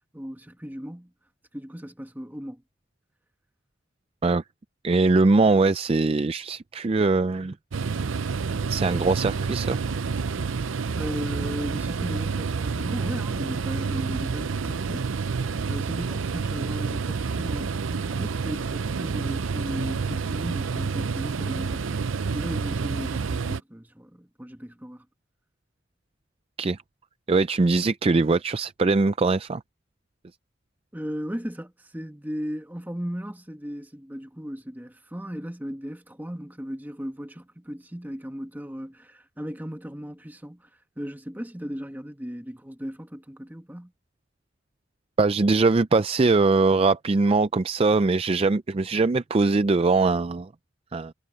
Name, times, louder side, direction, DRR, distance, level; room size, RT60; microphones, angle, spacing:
voice 1, 0.1-1.1 1.5-2.6 11.0-15.4 15.7-25.1 30.9-40.7 41.0-43.9, equal, 10° right, 1.4 m, -36 dB
voice 2, 4.8-7.5 8.7-9.8 26.6-26.8 27.3-29.6 45.2-50.5 50.9-51.1, right 3 dB, 30° right, 0.4 m, -22 dB
sound 1, 7.7-23.6, right 5 dB, 80° right, 0.6 m, -29 dB
head